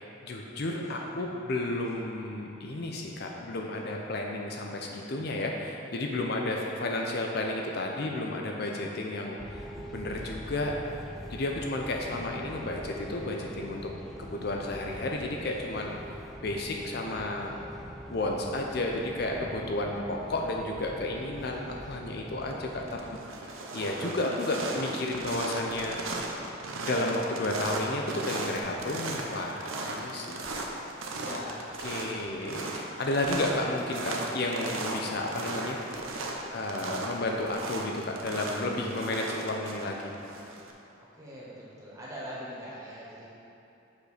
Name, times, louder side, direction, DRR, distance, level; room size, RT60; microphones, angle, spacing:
voice 1, 0.0-9.6 9.9-10.7 11.3-13.9 14.2-16.0 16.4-17.6 18.1-23.0 23.7-26.0 26.8-30.4 31.3-31.5 31.8-35.8 36.5-40.1, left 2 dB, 50° left, 0 dB, 0.5 m, -32 dB
voice 2, 0.8-1.1 6.5-6.6 31.1-31.7 32.0-32.1 41.1-43.3, equal, 15° right, -8 dB, 1.4 m, -43 dB
sound 1, 9.4-23.2, equal, ahead, 0.5 m, -43 dB
sound 2, 22.2-22.5 22.8-40.7, right 2 dB, 80° right, 0.8 m, -36 dB
6.5 x 5.3 x 4.9 m, 2.9 s
head